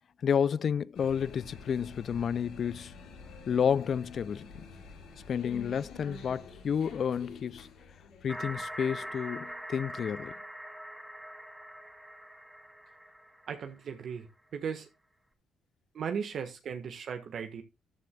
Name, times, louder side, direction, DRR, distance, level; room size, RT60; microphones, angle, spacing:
voice 1, 0.2-2.9 3.5-4.6 5.3-7.7 8.2-10.3, left 7 dB, 55° left, 0.4 m, -30 dB
sound 1, 0.9-9.6, left 4 dB, 85° left, 4.4 m, -49 dB
sound 2, 8.3-14.0, equal, 5° right, 2.4 m, -43 dB
voice 2, 13.5-14.9 15.9-17.6, right 7 dB, 60° right, 1.4 m, -37 dB
13.5 x 9.6 x 2.3 m
cardioid pair, 90°, 0 cm